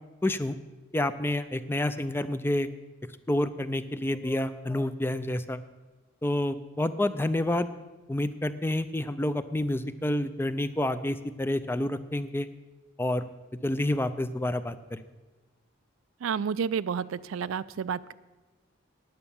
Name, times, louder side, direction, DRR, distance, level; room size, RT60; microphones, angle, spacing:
voice 1, 0.2-0.6 0.9-2.7 3.3-5.6 6.2-7.7 8.1-12.5 13.0-13.3 13.6-15.0, left 1 dB, 10° left, 12 dB, 0.4 m, -28 dB
voice 2, 16.2-18.1, right 7 dB, 80° right, 17 dB, 0.4 m, -30 dB
9.5 x 9.1 x 7.0 m, 1.2 s
head